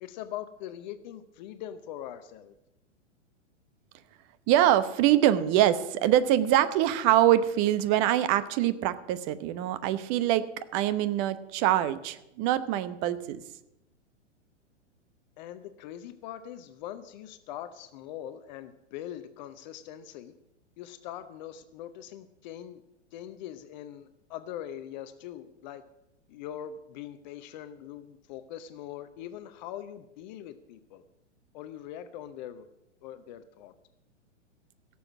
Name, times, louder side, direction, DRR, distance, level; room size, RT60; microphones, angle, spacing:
voice 1, 0.0-2.5 15.4-20.3 20.8-22.8 23.1-25.8 26.3-31.0 31.5-32.6 33.0-33.7, left 11 dB, 40° left, 11 dB, 0.8 m, -42 dB
voice 2, 4.5-10.4 10.7-13.4, right 12 dB, 35° right, 13 dB, 0.9 m, -24 dB
16.5 x 7.1 x 7.3 m, 0.88 s
figure-of-eight pair, 105°, 36 cm